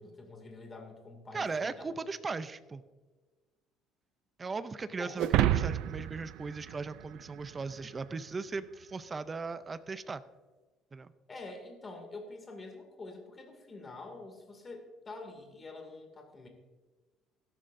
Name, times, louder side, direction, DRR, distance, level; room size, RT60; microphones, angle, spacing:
voice 1, 0.0-1.9 5.0-5.2 11.3-16.5, left 3 dB, 20° left, 4 dB, 2.3 m, -46 dB
voice 2, 1.3-2.8 4.4-10.2 10.9-11.1, right 4 dB, 20° right, 13 dB, 0.5 m, -38 dB
sound 1, 5.2-7.7, right 13 dB, 75° right, 0.4 m, -30 dB
18.0 x 12.5 x 2.6 m, 1.3 s
cardioid pair, 160°, 0 cm